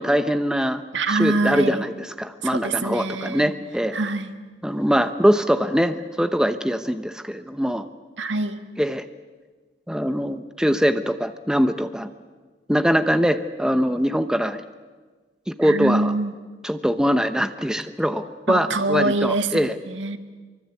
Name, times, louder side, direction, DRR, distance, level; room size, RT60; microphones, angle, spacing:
voice 1, 0.0-0.8 1.1-4.0 4.6-7.9 8.8-9.1 9.9-12.1 12.7-14.6 15.5-16.1 16.6-19.7, equal, 5° right, 9 dB, 0.9 m, -22 dB
voice 2, 0.9-1.8 2.4-3.5 3.9-4.3 8.2-8.6 15.6-16.3 18.5-20.2, right 2 dB, 90° right, 8 dB, 1.8 m, -24 dB
24.5 x 24.0 x 8.4 m, 1.4 s
head